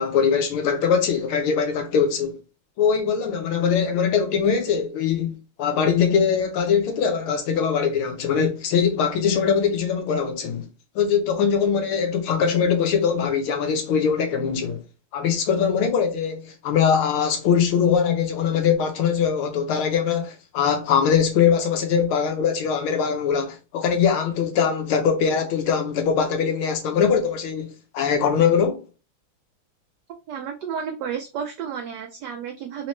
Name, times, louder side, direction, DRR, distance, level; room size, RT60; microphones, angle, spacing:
voice 1, 0.0-2.4 2.8-5.3 5.6-10.6 10.9-14.8 15.1-28.8, left 7 dB, 75° left, 1.7 m, -22 dB
voice 2, 30.1-32.9, right 7 dB, 85° right, 0.9 m, -32 dB
4.0 x 2.8 x 3.1 m
omnidirectional pair, 2.4 m